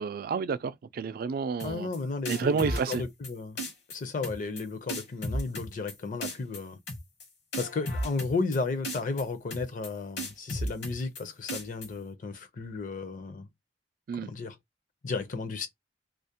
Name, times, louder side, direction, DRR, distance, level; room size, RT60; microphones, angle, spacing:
voice 1, 0.0-1.9 2.3-3.0 14.1-14.3, right 5 dB, 55° right, 0.3 m, -30 dB
sound 1, 1.6-2.0 2.3-3.3 3.6-4.0 4.2-4.6 4.9-5.9 6.2-6.6 6.9-7.2 7.5-8.6 8.8-9.2 9.5-9.9 10.2-11.2 11.5-11.9, equal, 65° left, 1.0 m, -34 dB
voice 2, 1.6-3.6 3.9-6.8 7.5-13.5 14.2-14.6 15.0-15.7, left 3 dB, 50° left, 0.5 m, -33 dB
2.4 x 2.0 x 2.8 m
head